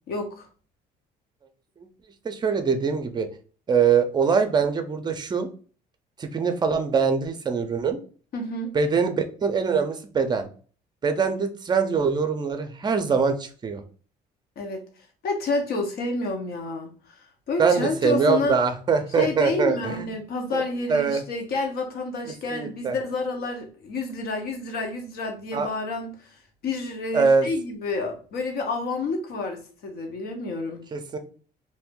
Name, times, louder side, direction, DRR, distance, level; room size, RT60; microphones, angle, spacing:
voice 1, 0.1-0.5 8.3-8.7 14.6-14.8 15.2-17.2 17.5-18.6 19.2-26.1 26.6-30.8, left 3 dB, 65° left, 3 dB, 1.0 m, -29 dB
voice 2, 2.2-3.3 3.7-5.5 6.2-8.0 8.7-10.5 11.0-13.8 17.6-20.1 20.5-20.6 20.9-21.2 22.5-23.0 25.5-25.7 27.1-27.5 30.9-31.2, right 5 dB, 25° right, 8 dB, 0.5 m, -23 dB
2.6 x 2.6 x 3.7 m, 0.40 s
cardioid pair, 110°, 17 cm